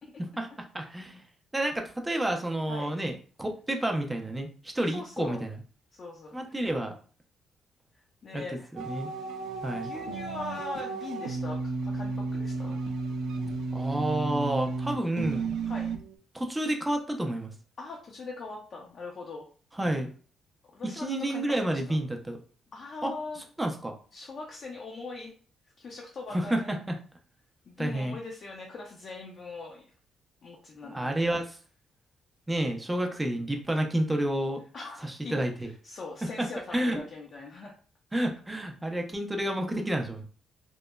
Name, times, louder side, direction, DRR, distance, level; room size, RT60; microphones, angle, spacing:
voice 1, 0.7-1.2 1.5-3.1 3.4-5.6 6.3-6.9 8.3-8.4 8.7-9.1 9.6-9.9 13.7-15.6 16.3-17.5 19.7-20.1 20.9-22.4 23.0-23.1 23.6-23.9 26.3-27.0 27.8-28.2 30.9-31.5 32.5-34.6 35.0-35.7 36.2-37.0 38.1-40.2, right 1 dB, 10° right, 3 dB, 0.4 m, -30 dB
voice 2, 4.9-5.4 5.9-6.7 8.2-8.7 9.7-12.8 15.7-15.9 17.8-19.5 20.7-22.0 22.7-23.4 24.1-25.3 25.8-26.8 27.7-29.9 30.4-31.1 34.7-37.7, left 3 dB, 50° left, -2 dB, 0.5 m, -41 dB
sound 1, 8.8-16.2, right 4 dB, 85° right, 0.3 m, -33 dB
2.9 x 2.1 x 2.2 m, 0.41 s
cardioid pair, 90°, 0 cm